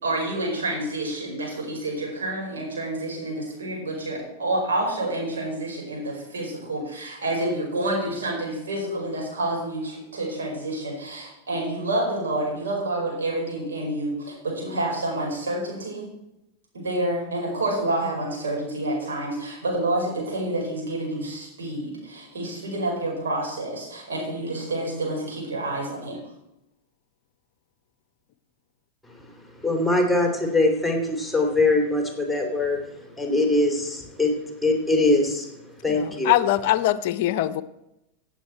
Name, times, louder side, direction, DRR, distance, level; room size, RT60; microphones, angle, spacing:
voice 1, 0.0-16.0 16.7-26.2, right 1 dB, 70° right, -1 dB, 5.1 m, -28 dB
voice 2, 29.0-36.4, left 2 dB, ahead, 2 dB, 2.7 m, -23 dB
voice 3, 35.9-37.6, left 14 dB, 55° left, 14 dB, 0.6 m, -22 dB
16.5 x 8.1 x 4.4 m, 0.89 s
figure-of-eight pair, 95°, 0 cm